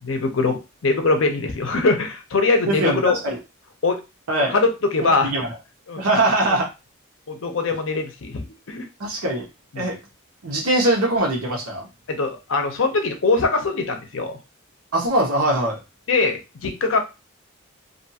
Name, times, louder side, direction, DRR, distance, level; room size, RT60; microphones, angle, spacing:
voice 1, 0.0-3.2 3.8-4.0 4.5-5.3 5.9-6.0 7.3-8.9 9.7-9.8 12.1-14.4 16.1-17.0, left 3 dB, 60° left, 5 dB, 0.6 m, -22 dB
voice 2, 2.7-3.4 4.3-4.6 5.0-5.5 6.0-6.7 9.0-9.5 9.8-10.0 10.4-11.9 14.9-15.8, right 1 dB, 85° right, 0 dB, 1.0 m, -21 dB
2.6 x 2.3 x 2.7 m, 0.27 s
head